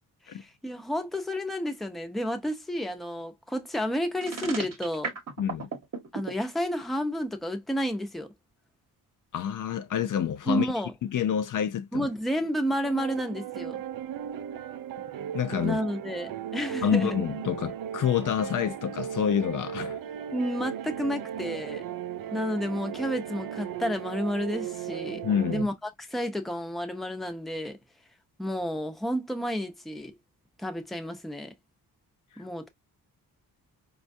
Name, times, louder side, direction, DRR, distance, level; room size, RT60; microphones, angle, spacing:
voice 1, 0.2-5.1 6.1-8.3 10.5-10.9 11.9-13.8 15.6-17.2 20.3-21.8 22.3-27.8 28.4-30.1 30.6-31.5 32.4-32.7, equal, ahead, 0.6 m, -31 dB
sound 1, 4.2-6.3, right 5 dB, 45° right, 1.0 m, -34 dB
voice 2, 5.4-5.7 9.3-10.7 11.0-12.1 15.3-15.8 16.8-20.0 25.2-25.7 32.4-32.5, left 9 dB, 55° left, 0.5 m, -28 dB
sound 2, 12.8-25.6, right 9 dB, 60° right, 0.5 m, -36 dB
4.3 x 2.3 x 2.5 m
cardioid pair, 110°, 38 cm